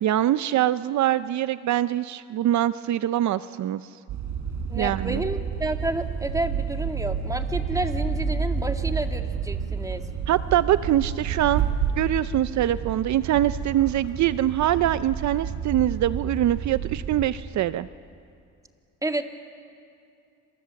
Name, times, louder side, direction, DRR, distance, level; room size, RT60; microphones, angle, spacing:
voice 1, 0.0-3.9 4.7-5.2 10.3-11.6 12.0-17.9, right 12 dB, 70° right, 14 dB, 0.6 m, -23 dB
sound 1, 4.1-17.3, right 6 dB, 85° right, 3.9 m, -30 dB
voice 2, 4.7-10.1 19.0-19.3, right 1 dB, 10° right, 5 dB, 2.1 m, -30 dB
28.5 x 26.0 x 7.7 m, 2.4 s
cardioid pair, 90°, 30 cm